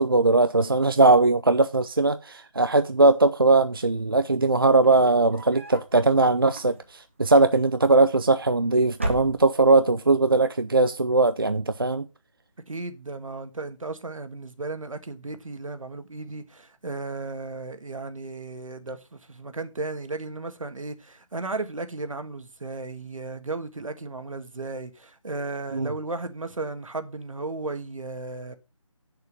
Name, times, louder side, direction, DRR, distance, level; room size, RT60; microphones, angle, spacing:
voice 1, 0.0-12.1 25.7-25.9, right 3 dB, 40° right, 0.4 m, -20 dB
sound 1, 4.8-6.0 6.4-7.1 8.1-8.6 8.9-9.8, right 1 dB, 20° right, 1.0 m, -34 dB
voice 2, 12.7-28.5, right 3 dB, 75° right, 1.6 m, -35 dB
7.9 x 6.8 x 5.2 m
figure-of-eight pair, 175°, 17 cm